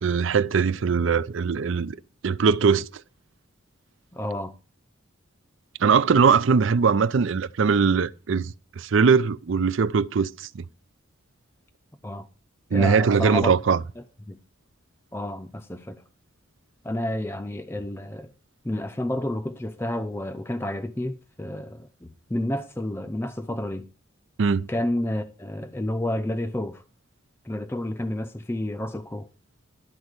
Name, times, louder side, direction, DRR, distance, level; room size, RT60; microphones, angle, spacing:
voice 1, 0.0-2.0 2.2-2.9 5.8-10.6 12.7-13.8 24.4-24.7, right 5 dB, 70° right, 0.5 m, -21 dB
voice 2, 4.1-4.5 12.0-12.3 12.7-13.5 14.0-14.4 15.1-16.0 16.8-18.3 18.6-23.9 24.7-26.8 27.4-29.3, left 1 dB, 10° left, 0.6 m, -30 dB
12.0 x 4.3 x 8.1 m
head